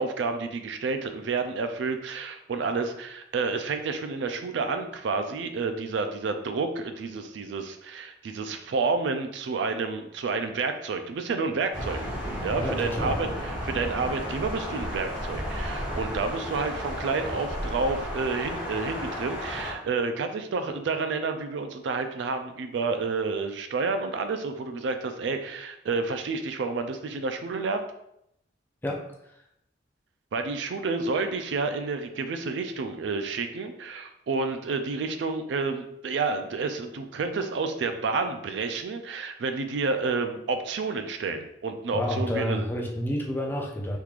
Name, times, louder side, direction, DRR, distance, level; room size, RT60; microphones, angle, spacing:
voice 1, 0.0-12.0 12.4-27.9 30.3-42.6, right 4 dB, 70° right, 8 dB, 0.4 m, -30 dB
Thunder, 11.7-19.7, equal, 15° right, 1.3 m, -33 dB
voice 2, 12.6-13.2 28.8-29.4 41.9-44.0, left 1 dB, 10° left, 0 dB, 0.4 m, -30 dB
3.6 x 3.0 x 2.4 m, 0.77 s
head